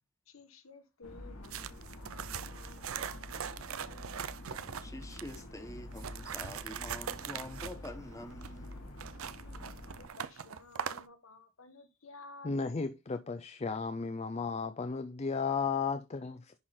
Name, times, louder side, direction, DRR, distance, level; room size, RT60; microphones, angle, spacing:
voice 1, 0.3-4.3 9.4-12.5, left 3 dB, 75° left, 1.4 m, -55 dB
sound 1, 1.0-10.1, left 1 dB, 90° left, 2.6 m, -47 dB
sound 2, 1.4-5.4 5.9-11.1, right 8 dB, 75° right, 0.6 m, -41 dB
voice 2, 4.8-8.9, left 1 dB, 15° left, 1.3 m, -46 dB
voice 3, 12.4-16.5, left 5 dB, 30° left, 0.4 m, -34 dB
11.0 x 3.8 x 4.3 m
head